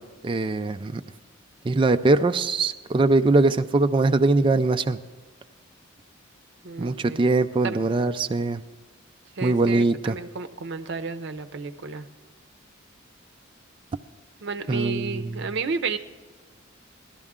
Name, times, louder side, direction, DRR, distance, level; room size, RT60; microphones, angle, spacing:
voice 1, 0.2-1.0 1.7-5.0 6.8-8.6 9.4-10.2 14.7-15.4, right 3 dB, 25° right, 8 dB, 0.3 m, -22 dB
voice 2, 6.6-7.2 7.6-7.8 9.4-12.1 14.4-16.0, right 4 dB, 60° right, 9 dB, 0.7 m, -32 dB
18.0 x 12.0 x 3.6 m, 1.4 s
head